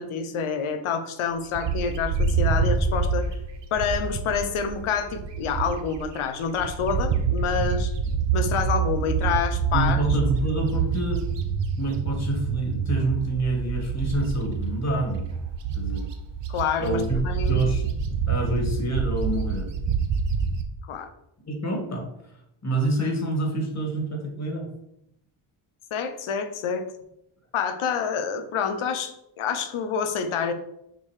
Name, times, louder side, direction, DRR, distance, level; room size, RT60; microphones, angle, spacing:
voice 1, 0.0-3.3 3.7-7.9 8.3-10.0 16.5-17.6 20.9-21.1 25.9-26.8 27.5-30.5, left 6 dB, 75° left, 8 dB, 1.1 m, -27 dB
Bird, 1.6-6.0 6.4-20.6, right 5 dB, 60° right, 1.1 m, -27 dB
voice 2, 9.7-11.2 11.8-15.3 15.7-16.1 16.8-17.2 17.5-17.9 18.3-19.7 21.4-22.1 22.6-24.7, right 2 dB, 30° left, 2 dB, 2.2 m, -27 dB
6.6 x 4.7 x 5.0 m, 0.80 s
cardioid pair, 110°, 49 cm